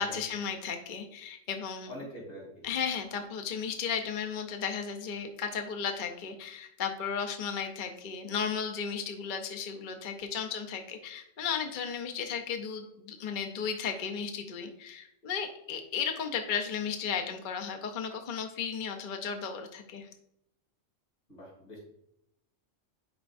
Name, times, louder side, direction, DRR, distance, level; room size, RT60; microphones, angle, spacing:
voice 1, 0.0-1.9 2.6-20.1, left 6 dB, 50° left, 4 dB, 0.7 m, -34 dB
voice 2, 1.9-2.6 21.3-21.8, equal, 75° left, -3 dB, 3.3 m, -44 dB
10.5 x 4.4 x 2.5 m, 0.77 s
omnidirectional pair, 1.3 m